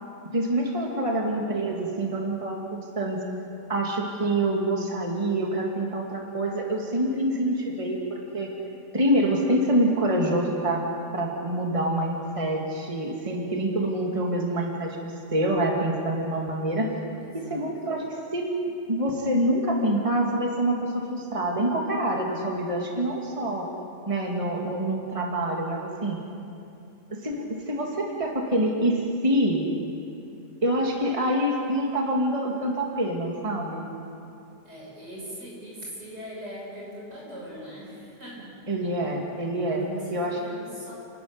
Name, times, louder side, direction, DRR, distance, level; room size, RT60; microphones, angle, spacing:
voice 1, 0.3-3.2 3.7-8.5 8.9-10.9 11.1-16.9 17.3-18.5 18.9-23.7 24.1-26.2 27.1-29.6 30.6-33.9 38.7-39.8 40.1-40.4, right 1 dB, 20° right, 0 dB, 2.4 m, -26 dB
voice 2, 17.2-17.7 34.6-38.5 39.7-40.9, right 1 dB, 80° right, -4 dB, 7.6 m, -40 dB
29.0 x 13.5 x 9.7 m, 2.7 s
omnidirectional pair, 1.8 m